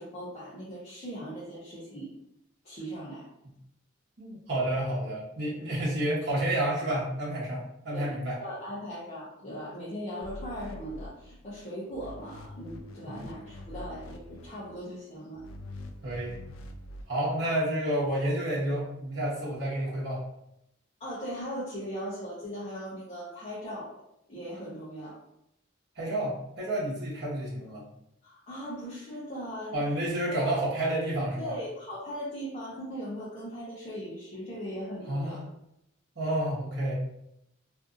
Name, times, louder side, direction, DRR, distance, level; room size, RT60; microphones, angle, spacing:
voice 1, 0.0-2.1 2.6-3.3 7.9-15.4 21.0-23.9 24.3-25.2 28.2-29.8 30.3-30.6 31.4-35.4, equal, 30° left, -8 dB, 0.6 m, -39 dB
voice 2, 4.2-8.4 13.1-13.3 16.0-16.4 17.1-20.2 26.0-27.9 29.7-31.6 35.1-35.4 36.1-36.9, right 1 dB, 55° right, -6 dB, 0.9 m, -30 dB
sound 1, 10.2-11.6 11.9-14.8 15.3-17.1, left 1 dB, 85° left, 0.3 m, -45 dB
2.6 x 2.5 x 2.5 m, 0.79 s
head